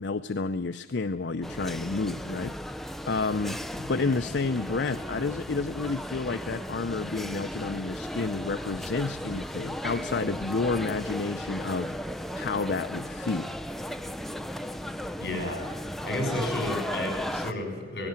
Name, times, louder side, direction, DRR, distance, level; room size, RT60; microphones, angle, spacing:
voice 1, 0.0-11.9 12.3-13.6, left 3 dB, 80° left, 9 dB, 0.6 m, -30 dB
sound 1, 1.4-17.5, equal, ahead, 0.7 m, -36 dB
voice 2, 15.2-15.6 16.0-18.1, left 1 dB, 60° left, 4 dB, 6.5 m, -32 dB
18.0 x 17.0 x 8.8 m, 1.4 s
head